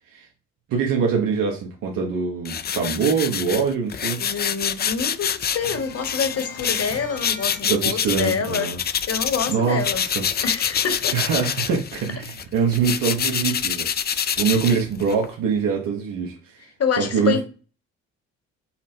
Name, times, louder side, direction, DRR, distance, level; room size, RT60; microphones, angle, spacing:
voice 1, 0.7-4.2 7.6-8.8 9.5-10.1 11.1-16.5 17.0-17.4, right 6 dB, 75° right, 1.1 m, -24 dB
sound 1, 2.4-9.5 9.8-15.3, left 8 dB, 30° left, 0.4 m, -26 dB
voice 2, 4.2-8.7 9.1-10.0 10.4-11.2 16.6-17.4, left 6 dB, 45° left, 1.3 m, -27 dB
sound 2, 5.6-8.9 9.3-9.4 9.7-10.7, left 3 dB, 70° left, 1.3 m, -40 dB
5.7 x 2.1 x 4.3 m
supercardioid pair, 60°, 33 cm